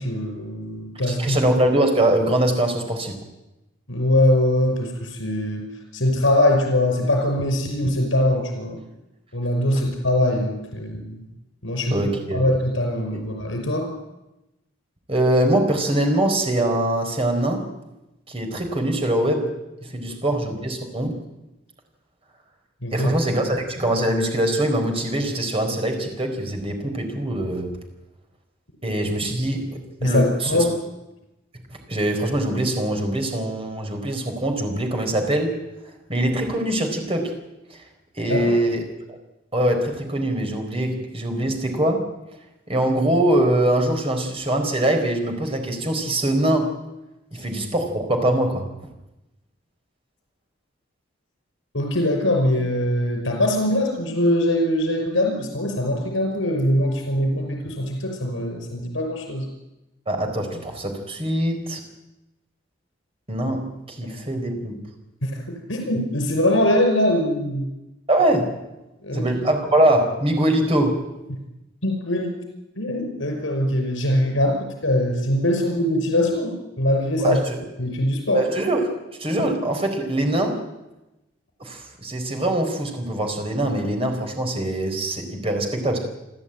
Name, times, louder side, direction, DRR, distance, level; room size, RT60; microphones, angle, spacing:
voice 1, 0.0-1.4 3.9-5.6 5.9-8.8 9.3-11.2 11.6-12.0 12.3-13.9 20.1-20.2 22.8-23.1 30.0-30.7 38.3-38.5 51.7-59.5 65.2-67.7 69.0-69.3 71.8-72.4 72.8-74.5 74.8-77.4 77.8-78.4, left 1 dB, 85° left, 3 dB, 5.7 m, -22 dB
voice 2, 1.1-3.2 9.7-9.8 11.9-12.4 13.1-13.2 15.1-17.7 18.3-19.5 19.8-21.2 22.9-27.8 28.8-30.6 31.9-35.6 36.1-37.4 38.1-39.2 39.5-42.1 42.7-46.7 47.3-48.7 60.1-61.8 63.3-64.8 68.1-68.5 69.1-71.0 77.2-77.6 78.3-80.6 81.6-86.0, right 1 dB, 30° right, 4 dB, 4.2 m, -23 dB
28.5 x 12.5 x 9.1 m, 0.97 s
head